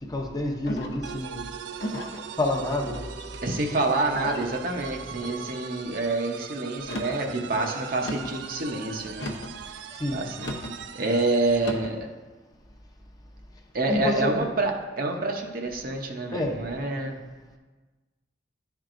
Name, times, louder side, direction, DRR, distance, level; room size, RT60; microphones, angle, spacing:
voice 1, 0.0-1.5 2.4-3.1 9.9-10.2 13.9-14.5 16.3-16.6, left 1 dB, 20° left, 2 dB, 0.7 m, -28 dB
sound 1, 0.7-1.1 1.8-2.2 2.9-3.4 4.1-4.5 5.2-5.6 6.8-7.2 8.0-8.4 9.1-9.6 10.4-10.8 11.6-12.0, left 1 dB, 70° left, 0.7 m, -35 dB
sound 2, 1.0-11.8, right 7 dB, 85° right, 0.4 m, -41 dB
voice 2, 3.4-9.3 9.7-9.8 10.1-10.5 10.9-12.1 13.7-17.2, right 2 dB, 55° right, 2 dB, 0.7 m, -27 dB
11.0 x 4.5 x 2.5 m, 1.3 s
head